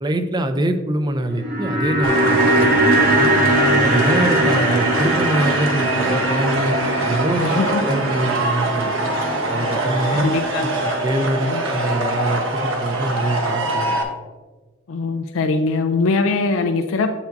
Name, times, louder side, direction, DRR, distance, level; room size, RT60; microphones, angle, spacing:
voice 1, 0.0-3.3 3.8-6.7 7.1-9.1 9.5-14.0, right 1 dB, 20° right, 8 dB, 0.5 m, -24 dB
sound 1, 1.2-11.5 11.7-11.8, right 1 dB, 55° right, 2.2 m, -21 dB
sound 2, 2.0-14.0, right 2 dB, 80° right, 1.1 m, -23 dB
voice 2, 7.4-7.8 10.1-11.0 11.5-11.6 14.9-17.1, left 3 dB, 90° left, 6 dB, 0.4 m, -22 dB
8.1 x 7.1 x 2.6 m, 1.3 s
head